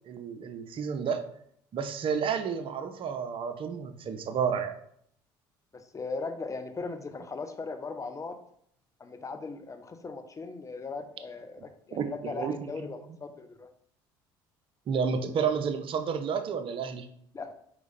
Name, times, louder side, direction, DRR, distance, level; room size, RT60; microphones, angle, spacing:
voice 1, 0.1-1.2 1.7-4.7 11.9-12.9 14.9-17.1, right 6 dB, 50° right, 8 dB, 0.8 m, -31 dB
voice 2, 5.7-8.4 9.0-13.7 17.3-17.5, left 4 dB, 30° left, 8 dB, 0.9 m, -38 dB
5.0 x 4.8 x 4.2 m, 0.67 s
hypercardioid pair, 70°, 11 cm